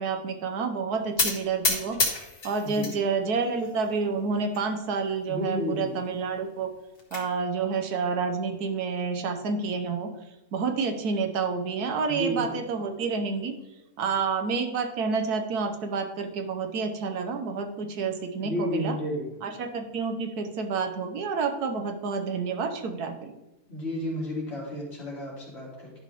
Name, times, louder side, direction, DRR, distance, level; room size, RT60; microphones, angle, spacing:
voice 1, 0.0-2.0 2.4-6.7 7.1-10.1 10.5-13.5 14.0-19.0 19.4-23.3, right 5 dB, 85° right, 6 dB, 1.4 m, -29 dB
sound 1, 1.2-3.0 3.3-4.0 4.5-4.6 4.9-5.0 5.4-5.5 6.6-7.2, left 3 dB, 85° left, 2.1 m, -29 dB
voice 2, 2.6-2.9 5.3-5.9 12.1-12.5 18.3-19.3 23.7-25.9, equal, 45° left, -4 dB, 2.6 m, -32 dB
11.0 x 5.3 x 3.3 m, 0.98 s
omnidirectional pair, 1.6 m